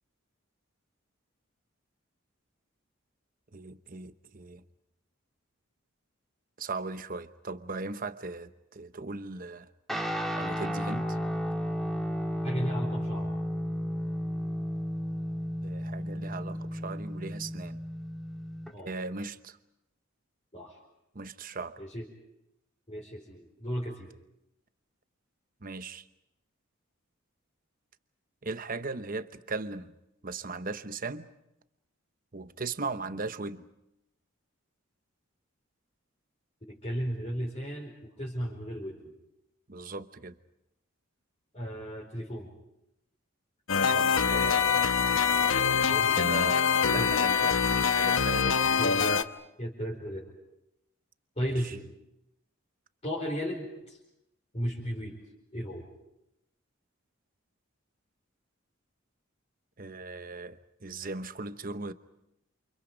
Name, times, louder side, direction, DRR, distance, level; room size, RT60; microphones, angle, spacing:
voice 1, 3.5-4.6 6.6-9.7 10.4-11.2 15.6-17.8 18.8-19.6 21.1-21.8 25.6-26.1 28.4-30.0 30.2-31.3 32.3-33.7 39.7-40.4 43.8-44.9 46.1-47.6 48.0-48.6 51.4-51.8 59.8-61.9, right 3 dB, 40° right, 0.9 m, -38 dB
Guitar, 9.9-18.7, equal, ahead, 2.1 m, -33 dB
voice 2, 12.4-13.3 18.7-18.9 20.5-20.8 21.8-22.0 22.9-24.1 36.7-39.1 41.5-42.5 45.8-46.2 46.9-47.1 48.8-49.3 49.6-50.3 51.4-51.9 53.0-54.0 54.5-55.2 55.5-55.9, equal, 30° left, 4.8 m, -35 dB
sound 1, 43.7-49.2, left 6 dB, 75° left, 1.0 m, -24 dB
29.0 x 28.0 x 5.2 m
head